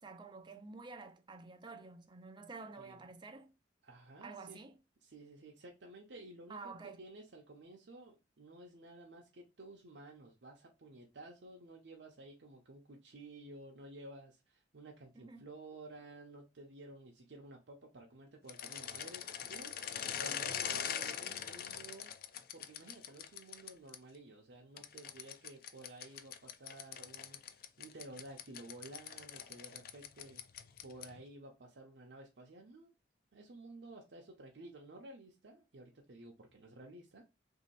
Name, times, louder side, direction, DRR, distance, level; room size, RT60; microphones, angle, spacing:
voice 1, 0.0-3.5 4.2-4.8 6.5-7.0 15.2-15.5, right 4 dB, 25° right, 0.4 m, -50 dB
voice 2, 3.8-4.6 5.0-6.7 7.0-22.1 22.5-30.4 30.8-32.9 33.3-37.3, right 2 dB, 70° right, 0.7 m, -53 dB
sound 1, 18.5-24.0 24.8-31.2, left 9 dB, 50° left, 0.4 m, -43 dB
3.1 x 2.8 x 4.1 m
head